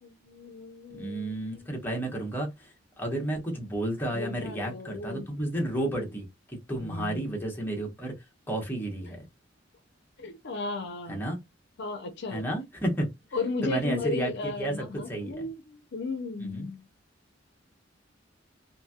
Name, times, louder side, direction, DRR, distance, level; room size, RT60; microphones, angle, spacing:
voice 1, 0.0-1.7 4.1-5.3 6.8-7.4 10.2-11.3 11.8-12.4 13.3-16.9, left 3 dB, 60° left, 0.5 m, -35 dB
voice 2, 0.9-8.1 8.5-9.2 11.1-11.4 12.3-13.1 13.6-14.7 15.1-15.3 16.4-16.7, right 1 dB, 10° left, 1.0 m, -32 dB
3.0 x 2.6 x 2.3 m
head